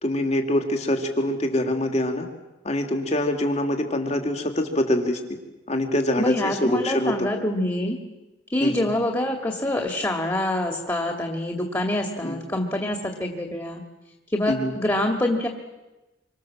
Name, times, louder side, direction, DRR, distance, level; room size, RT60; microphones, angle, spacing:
voice 1, 0.0-2.3 2.6-5.4 5.7-7.3 8.6-8.9 12.2-12.4 14.5-14.7, left 1 dB, 35° left, 4 dB, 2.9 m, -24 dB
voice 2, 6.2-8.0 8.5-13.8 14.3-15.5, left 1 dB, 15° left, 3 dB, 2.4 m, -25 dB
27.5 x 25.0 x 7.6 m, 1.1 s
head